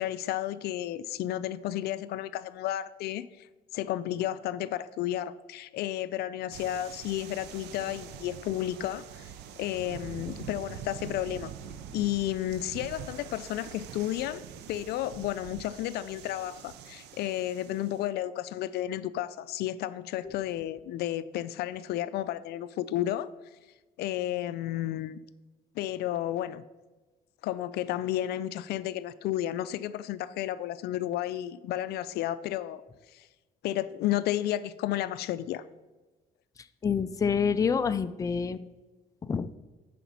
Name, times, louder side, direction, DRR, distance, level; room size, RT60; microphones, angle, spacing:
voice 1, 0.0-3.5 3.7-9.3 9.6-11.5 11.9-23.3 24.0-25.2 25.8-26.6 27.4-32.8 33.1-33.3 33.6-35.6, left 13 dB, 75° left, 15 dB, 0.4 m, -32 dB
sound 1, 6.5-18.1, right 8 dB, 80° right, 0.7 m, -44 dB
voice 2, 36.8-38.6 39.2-39.5, left 6 dB, 20° left, 11 dB, 0.4 m, -27 dB
10.0 x 5.1 x 5.4 m, 1.2 s
cardioid pair, 110°, 17 cm